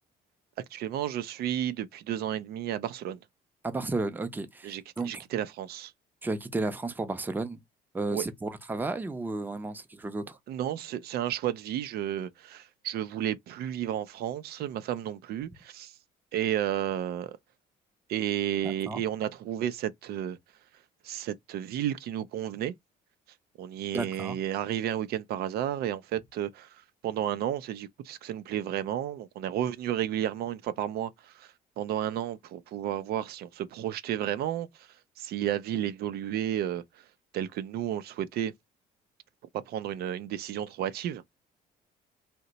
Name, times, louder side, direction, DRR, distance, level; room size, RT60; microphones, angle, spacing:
voice 1, 0.7-3.2 4.6-5.9 8.1-8.2 10.5-15.9 16.3-17.4 18.1-20.4 21.0-22.7 23.6-34.9 35.2-37.0 37.3-38.5 39.5-41.2, right 11 dB, 70° right, 0.4 m, -32 dB
voice 2, 3.6-5.2 6.2-7.6 7.9-10.4 18.6-19.0 23.9-24.4, right 3 dB, 10° right, 0.5 m, -33 dB
2.8 x 2.1 x 3.9 m
cardioid pair, 110°, 17 cm